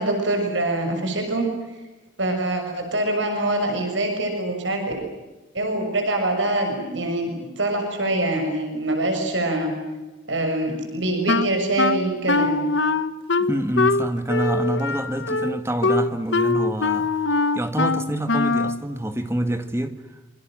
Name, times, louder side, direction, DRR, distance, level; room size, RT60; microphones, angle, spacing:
voice 1, 0.0-1.5 2.2-4.8 5.5-9.7 10.3-12.6, right 1 dB, 80° right, 6.6 m, -24 dB
Wind instrument woodwind instrument, 11.3-18.8, left 3 dB, 75° left, 1.3 m, -22 dB
voice 2, 13.5-17.1 17.5-20.0, right 1 dB, 15° right, 1.9 m, -26 dB
27.5 x 25.0 x 7.7 m
head